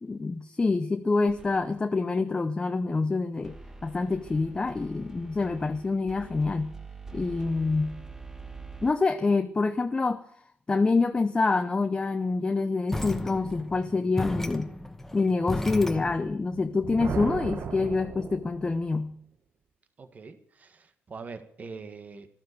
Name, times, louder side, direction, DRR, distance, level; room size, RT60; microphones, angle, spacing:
voice 1, 0.0-6.7 7.1-8.0 8.8-10.2 10.7-14.7 15.1-19.1, left 3 dB, 25° left, 0.8 m, -26 dB
sound 1, 1.3-2.0 3.4-8.9, right 4 dB, 15° right, 1.4 m, -45 dB
sound 2, 12.9-16.4, left 1 dB, 10° left, 1.2 m, -34 dB
Thunder, 16.5-19.1, right 6 dB, 55° right, 1.4 m, -36 dB
voice 2, 20.0-22.3, right 4 dB, 40° right, 1.7 m, -43 dB
14.5 x 13.0 x 6.9 m
cardioid pair, 110°, 4 cm